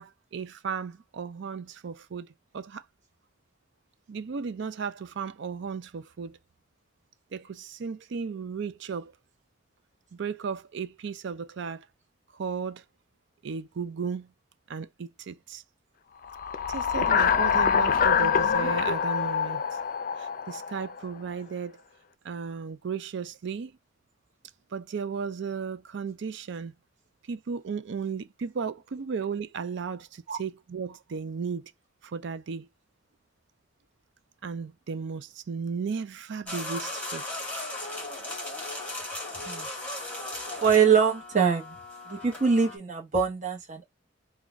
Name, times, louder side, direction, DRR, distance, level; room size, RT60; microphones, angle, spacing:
voice 1, 0.0-2.3 2.5-2.8 4.1-6.4 7.3-9.1 10.1-11.9 12.3-12.8 13.4-14.3 14.7-15.6 16.7-19.6 20.2-21.8 22.2-23.7 24.7-26.7 27.3-31.7 32.0-32.7 34.4-37.2, right 5 dB, 65° right, 0.4 m, -35 dB
sound 1, 16.3-21.0, left 6 dB, 45° left, 0.4 m, -25 dB
sound 2, 36.5-42.8, left 2 dB, 5° left, 1.8 m, -37 dB
voice 2, 40.6-41.8 42.1-43.8, right 6 dB, 40° right, 0.9 m, -23 dB
3.9 x 2.3 x 3.4 m
head